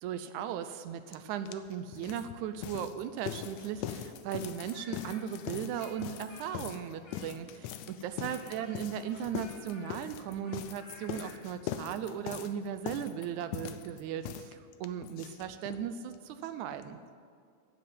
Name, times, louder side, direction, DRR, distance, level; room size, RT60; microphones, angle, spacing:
voice 1, 0.0-17.0, right 9 dB, 80° right, 11 dB, 2.0 m, -37 dB
sound 1, 1.1-1.2 1.5-15.9 16.1-16.2 16.4-16.5 16.8-16.9, left 10 dB, 80° left, 1.9 m, -41 dB
Speech, 4.6-7.5 8.2-11.4, left 2 dB, 50° left, 3.7 m, -54 dB
9.8 x 8.1 x 9.3 m, 2.3 s
omnidirectional pair, 3.5 m